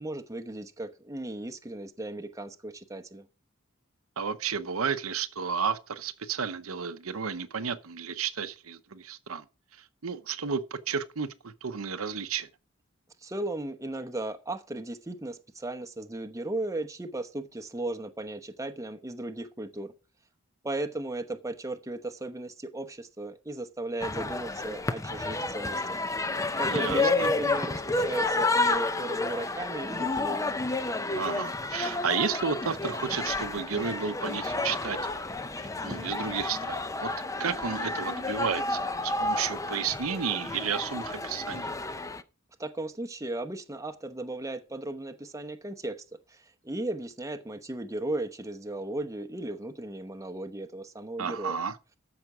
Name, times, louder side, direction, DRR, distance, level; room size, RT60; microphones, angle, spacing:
voice 1, 0.0-3.3 13.2-19.9 20.6-26.0 26.6-30.6 42.6-51.6, right 2 dB, 15° right, 0.9 m, -36 dB
voice 2, 4.2-9.4 10.0-12.5 26.7-27.3 31.1-35.2 35.6-37.1 37.4-41.7 51.2-51.8, right 6 dB, 90° right, 0.8 m, -32 dB
sound 1, 24.0-42.2, left 2 dB, 15° left, 0.6 m, -30 dB
13.5 x 5.9 x 4.9 m
head